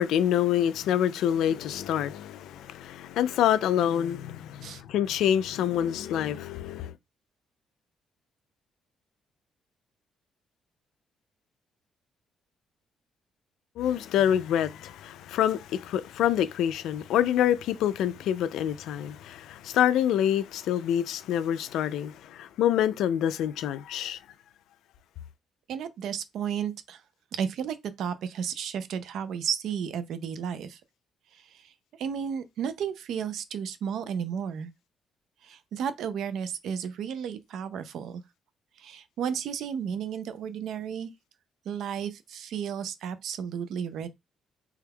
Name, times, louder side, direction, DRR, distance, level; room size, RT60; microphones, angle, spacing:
voice 1, 0.0-6.9 13.8-24.2, left 10 dB, 85° left, 0.3 m, -26 dB
voice 2, 25.7-27.0 27.3-30.8 31.3-31.7 32.0-34.7 35.4-38.2 38.8-41.1 41.7-44.1, right 8 dB, 75° right, 0.4 m, -33 dB
3.4 x 3.3 x 2.2 m
cardioid pair, 90°, 0 cm